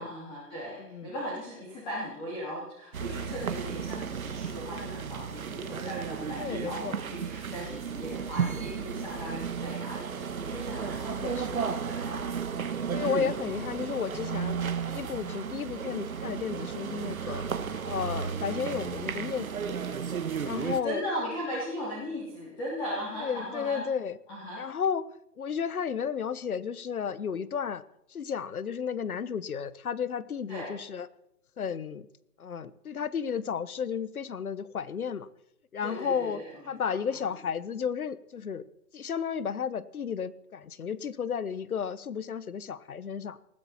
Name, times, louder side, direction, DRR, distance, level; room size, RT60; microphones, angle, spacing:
voice 1, 0.0-12.3 20.5-23.9 24.3-24.7 30.5-30.8 35.8-37.0 37.2-37.3, equal, 10° left, -5 dB, 2.9 m, -38 dB
voice 2, 0.8-1.1 6.4-7.0 11.1-11.6 12.2-12.3 12.9-14.6 14.9-17.4 17.8-19.8 20.4-21.0 23.2-24.2 24.6-25.1 25.4-27.8 28.1-31.1 31.6-32.1 32.4-35.3 35.7-38.6 38.9-43.4, left 7 dB, 65° left, 17 dB, 1.2 m, -33 dB
sound 1, 2.9-20.8, right 6 dB, 60° right, 1.6 m, -34 dB
20.5 x 15.0 x 4.3 m, 0.78 s
hypercardioid pair, 170°, 47 cm